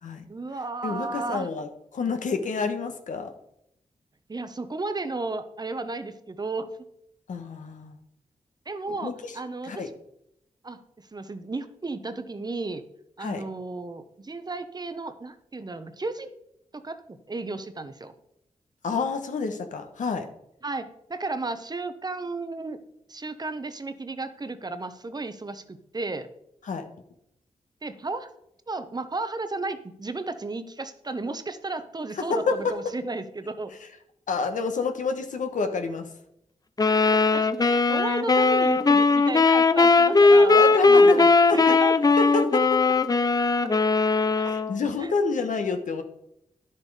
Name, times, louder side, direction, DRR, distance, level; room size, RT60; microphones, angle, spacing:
voice 1, 0.3-1.5 4.3-6.7 8.7-9.9 10.6-10.8 11.1-12.8 13.2-16.3 16.7-18.1 20.6-22.8 23.1-26.3 27.8-28.3 28.7-33.7 37.1-41.9 43.6-43.7 44.4-44.5 45.0-45.1, right 3 dB, 30° right, 10 dB, 0.9 m, -34 dB
voice 2, 0.8-3.3 7.3-7.9 9.0-9.1 9.6-9.9 13.2-13.4 18.8-20.2 26.6-26.8 32.3-32.7 34.3-36.1 40.4-41.2 41.5-41.8 42.2-42.8 44.4-46.0, left 4 dB, 80° left, 6 dB, 1.3 m, -28 dB
sound 1, 36.8-44.8, left 3 dB, 30° left, 0.6 m, -19 dB
10.5 x 6.6 x 4.9 m, 0.77 s
cardioid pair, 65°, 13 cm